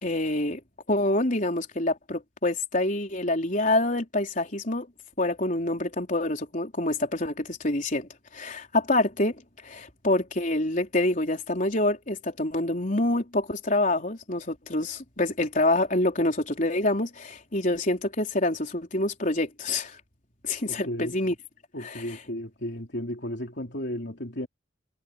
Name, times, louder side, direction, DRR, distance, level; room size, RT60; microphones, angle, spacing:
voice 1, 0.0-0.6 0.9-4.9 5.2-9.4 9.6-20.0 20.4-21.3 21.8-22.2, left 2 dB, 45° left, 4.2 m, -26 dB
voice 2, 20.7-21.2 21.7-24.5, equal, 60° left, 3.4 m, -34 dB
head